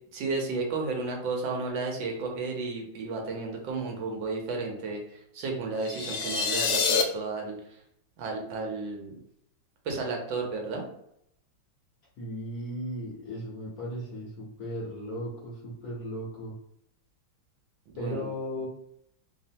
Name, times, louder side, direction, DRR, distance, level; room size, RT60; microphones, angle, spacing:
voice 1, 0.1-7.8 8.2-9.2 9.8-10.9 17.9-18.3, right 3 dB, 75° right, 1 dB, 1.4 m, -33 dB
sound 1, 5.8-7.0, left 5 dB, 85° left, 1.4 m, -26 dB
voice 2, 12.2-16.6 18.0-18.7, equal, 65° left, -4 dB, 1.0 m, -36 dB
3.4 x 2.0 x 2.7 m, 0.75 s
omnidirectional pair, 2.2 m